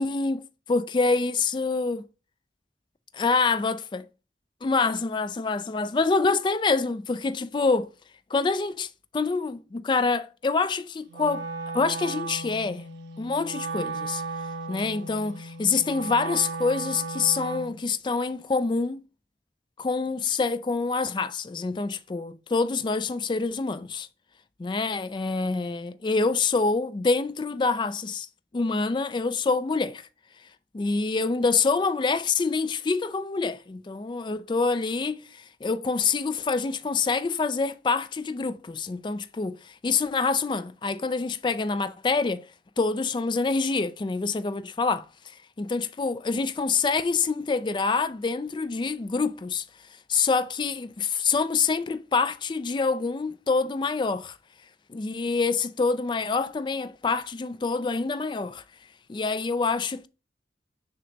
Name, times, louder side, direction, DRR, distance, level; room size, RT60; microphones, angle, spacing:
voice 1, 0.0-0.4 0.7-2.0 3.1-4.1 4.6-7.9 8.3-11.4 11.7-12.9 13.2-14.2 14.7-19.0 19.8-24.1 24.6-28.3 28.5-30.1 30.7-42.5 42.8-49.6 50.1-54.4 54.9-58.6 59.1-60.1, left 4 dB, 25° left, 0.3 m, -26 dB
Wind instrument woodwind instrument, 11.1-17.8, right 3 dB, 85° right, 0.9 m, -35 dB
6.6 x 2.9 x 5.1 m
head